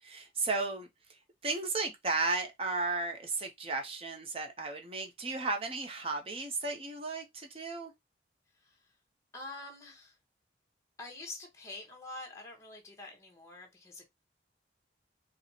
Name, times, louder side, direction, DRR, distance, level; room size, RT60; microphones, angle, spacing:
voice 1, 0.0-7.9, right 3 dB, 30° right, 0.6 m, -34 dB
voice 2, 9.3-10.2 11.0-14.1, left 2 dB, 15° left, 0.9 m, -46 dB
4.0 x 2.0 x 2.7 m
head